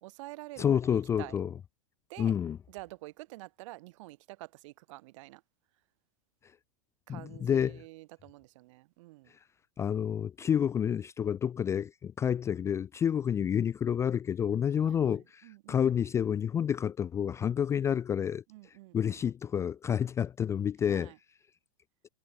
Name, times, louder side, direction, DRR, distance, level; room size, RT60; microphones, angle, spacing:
voice 1, 0.0-0.7 0.9-1.4 2.1-2.3 2.7-5.4 7.1-9.3 13.2-13.3 14.8-15.8 18.5-19.2 20.9-21.2, right 20 dB, 60° right, 3.3 m, -48 dB
voice 2, 0.6-1.5 2.2-2.6 7.1-7.8 9.3-9.4 9.8-18.4 18.9-21.1, left 8 dB, 15° left, 0.4 m, -29 dB
supercardioid pair, 135°, 18 cm